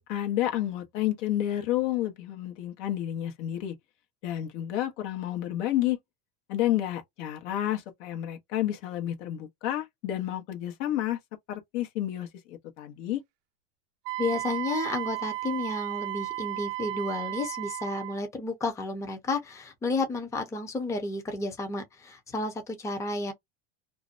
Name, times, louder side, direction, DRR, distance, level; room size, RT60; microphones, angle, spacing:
voice 1, 0.0-3.7 4.2-6.0 6.5-11.2 11.5-13.2, left 13 dB, 70° left, 1.0 m, -30 dB
Wind instrument woodwind instrument, 14.1-18.2, right 18 dB, 65° right, 0.5 m, -34 dB
voice 2, 14.2-23.3, left 3 dB, 10° left, 0.6 m, -32 dB
2.6 x 2.1 x 2.5 m
supercardioid pair, 115°, 38 cm